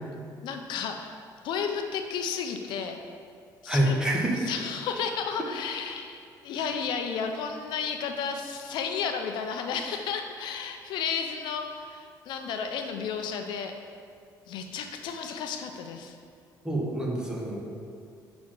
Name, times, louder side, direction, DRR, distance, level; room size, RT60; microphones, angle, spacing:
voice 1, 0.4-1.2 1.4-3.0 3.6-4.0 4.4-13.7 14.5-16.2, left 6 dB, 75° left, 5 dB, 0.6 m, -33 dB
voice 2, 3.7-4.4 16.6-17.6, right 1 dB, 10° right, -2 dB, 1.1 m, -26 dB
5.8 x 4.2 x 6.3 m, 2.4 s
cardioid pair, 125°, 8 cm